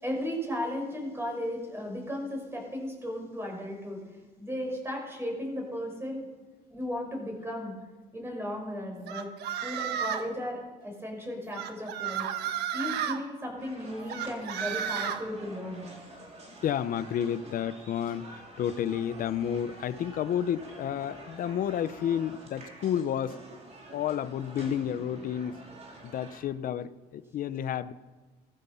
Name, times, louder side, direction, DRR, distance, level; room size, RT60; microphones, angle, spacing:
voice 1, 0.0-4.0 4.4-6.2 6.7-7.7 8.1-9.3 9.6-12.3 12.7-15.8, left 1 dB, 15° right, 0 dB, 6.2 m, -35 dB
sound 1, 9.1-10.3 11.5-13.2 14.1-15.2, right 9 dB, 80° right, 1.2 m, -32 dB
sound 2, 13.6-26.4, right 2 dB, 40° right, 4.3 m, -48 dB
voice 2, 16.6-23.6 23.9-25.6 26.0-27.9, left 9 dB, 55° left, 15 dB, 0.8 m, -31 dB
16.5 x 14.0 x 5.7 m, 1.3 s
cardioid pair, 110°, 17 cm